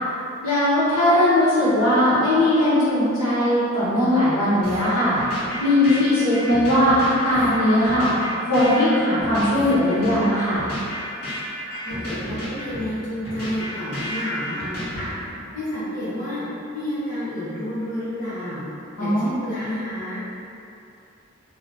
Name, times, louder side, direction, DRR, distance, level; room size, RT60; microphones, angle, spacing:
voice 1, 0.4-5.2 5.6-10.6 19.0-19.3, left 1 dB, 80° left, -11 dB, 1.1 m, -19 dB
sound 1, 4.6-15.4, equal, 55° left, 1.3 m, -32 dB
voice 2, 11.8-15.1 15.5-18.6 19.0-20.2, left 1 dB, 40° left, -11 dB, 0.7 m, -30 dB
2.7 x 2.5 x 3.2 m, 2.7 s
head